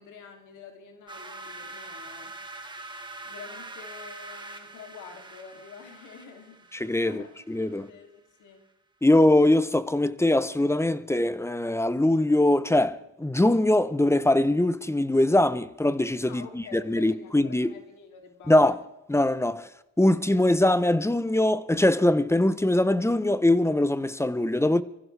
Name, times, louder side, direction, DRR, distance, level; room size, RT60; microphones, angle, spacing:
voice 1, 0.0-2.4 3.2-6.7 7.0-7.3 7.6-8.6 16.3-18.8 19.5-19.6, left 6 dB, 80° left, 3.0 m, -47 dB
sound 1, 1.1-7.9, right 2 dB, 15° right, 2.1 m, -43 dB
voice 2, 6.7-7.2 7.5-7.9 9.0-17.7 18.5-18.7 19.1-19.7 20.0-24.8, left 1 dB, 10° left, 0.9 m, -22 dB
25.0 x 15.5 x 3.4 m
cardioid pair, 90°, 30 cm